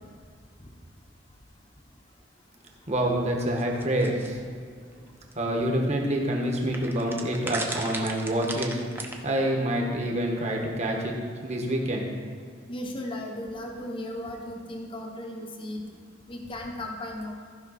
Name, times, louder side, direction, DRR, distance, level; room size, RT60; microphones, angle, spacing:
voice 1, 2.9-4.4 5.3-8.8 9.2-11.1 11.4-12.0, right 1 dB, 35° right, 0 dB, 1.4 m, -27 dB
sound 1, 3.6-4.3 5.3-5.4 5.6-5.7 6.7-9.1, right 2 dB, 10° right, 0.8 m, -35 dB
voice 2, 12.7-15.8 16.3-17.3, left 1 dB, 25° left, 1 dB, 0.9 m, -36 dB
15.0 x 5.5 x 4.2 m, 2.2 s
head